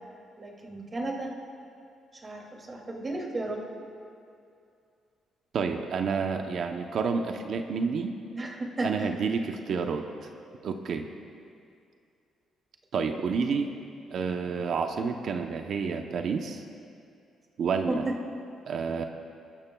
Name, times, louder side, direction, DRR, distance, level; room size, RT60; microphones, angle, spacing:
voice 1, 0.4-1.3 2.2-2.4 2.7-3.6 8.3-9.1 17.9-18.0, right 2 dB, 30° right, -1 dB, 2.6 m, -33 dB
voice 2, 5.5-8.2 8.8-10.0 10.6-11.1 12.9-13.7 14.1-16.6 17.6-18.0 18.7-19.0, right 5 dB, 65° right, 5 dB, 0.8 m, -29 dB
21.0 x 13.0 x 2.3 m, 2.4 s
cardioid pair, 90°, 0 cm